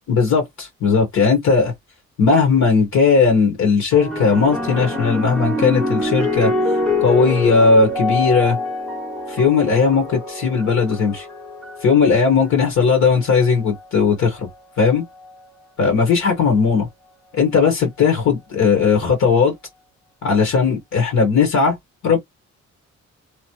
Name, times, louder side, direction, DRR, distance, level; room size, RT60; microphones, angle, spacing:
voice 1, 0.1-1.7 2.2-6.5 7.0-8.6 9.3-11.2 11.8-14.4 14.8-15.0 15.8-16.9 17.3-19.5 20.2-21.8 22.0-22.2, left 5 dB, 65° left, 1.5 m, -17 dB
sound 1, 3.9-12.5 13.4-13.8, left 2 dB, ahead, 1.0 m, -25 dB
3.1 x 2.2 x 2.9 m
cardioid pair, 90°, 30 cm